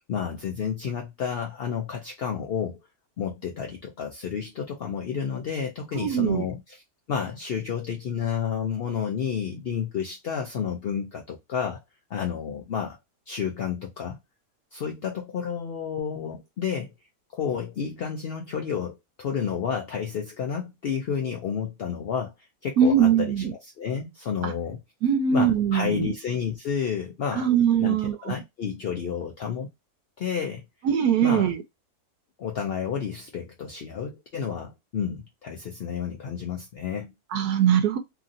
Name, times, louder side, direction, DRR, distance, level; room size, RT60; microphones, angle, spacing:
voice 1, 0.1-2.8 3.2-6.8 7.1-11.8 12.1-13.0 13.3-14.2 14.7-16.9 17.3-22.3 22.6-24.8 25.3-27.5 27.8-29.7 30.2-30.6 31.2-31.5 32.4-37.1, left 7 dB, 65° left, 0.6 m, -31 dB
voice 2, 5.9-6.4 22.8-23.5 24.4-24.5 25.0-26.1 27.4-28.1 30.8-31.6 37.3-38.0, right 8 dB, 75° right, 1.1 m, -21 dB
3.0 x 2.7 x 2.4 m
omnidirectional pair, 1.7 m